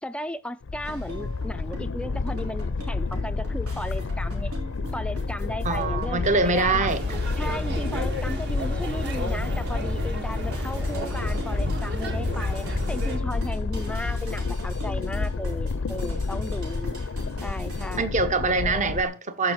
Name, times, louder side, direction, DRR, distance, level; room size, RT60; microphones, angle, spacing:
voice 1, 0.0-4.5 4.9-6.9 7.4-16.9 17.4-18.2 18.6-18.9, equal, 5° left, 0.4 m, -35 dB
sound 1, 0.6-19.0, left 3 dB, 60° left, 0.5 m, -30 dB
sound 2, 0.8-18.0, right 1 dB, 90° right, 3.8 m, -43 dB
voice 2, 5.6-7.0 18.0-19.5, right 3 dB, 35° right, 0.9 m, -24 dB
sound 3, 6.9-13.2, equal, 55° right, 1.7 m, -32 dB
14.0 x 5.3 x 4.6 m
head